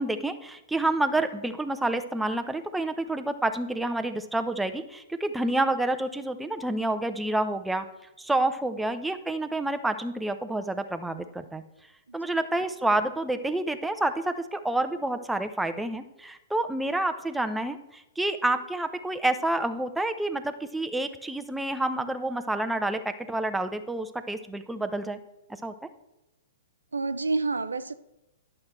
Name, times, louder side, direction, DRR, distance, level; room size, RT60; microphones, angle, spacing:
voice 1, 0.0-7.9 8.2-11.6 12.1-25.2 25.6-25.7, right 2 dB, 5° right, 0.7 m, -28 dB
voice 2, 26.9-27.9, right 3 dB, 80° right, 0.5 m, -29 dB
11.5 x 6.5 x 4.3 m
figure-of-eight pair, 115°, 0 cm